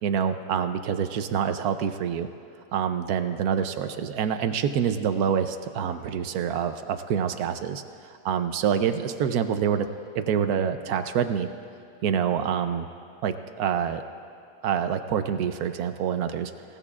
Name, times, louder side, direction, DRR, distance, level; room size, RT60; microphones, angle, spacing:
voice 1, 0.0-2.3 2.7-7.8 8.2-9.9 10.1-11.5 12.0-12.9 13.2-14.0 14.6-16.5, right 8 dB, 90° right, 8 dB, 1.2 m, -26 dB
27.0 x 17.0 x 2.4 m, 2.6 s
omnidirectional pair, 1.5 m